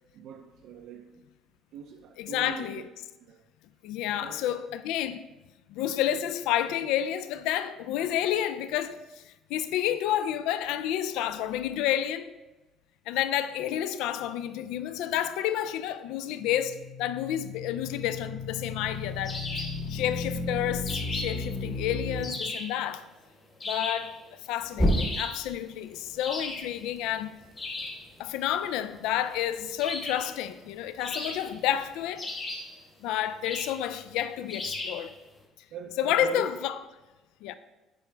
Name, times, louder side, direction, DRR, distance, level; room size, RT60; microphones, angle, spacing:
voice 1, 0.1-1.2 1.7-2.8 3.2-3.4 4.2-4.6 35.7-36.5, right 7 dB, 55° right, 0.4 m, -42 dB
voice 2, 2.2-2.9 3.8-5.2 5.7-12.3 13.1-19.4 19.9-23.0 23.7-24.2 24.4-27.4 28.2-32.3 33.0-35.1 36.0-36.8 37.4-37.6, left 11 dB, 85° left, 0.3 m, -30 dB
sound 1, 16.4-22.2 24.7-25.5, left 1 dB, 5° left, 0.8 m, -32 dB
sound 2, 19.2-19.8 20.9-21.5 22.2-22.7 23.6-24.1 24.9-25.4 26.2-26.7 27.6-28.0 29.8-30.3 31.0-31.7 32.2-32.7 33.4-33.8 34.5-35.0, left 2 dB, 20° left, 1.2 m, -36 dB
8.1 x 4.8 x 3.3 m
cardioid pair, 175°, 0 cm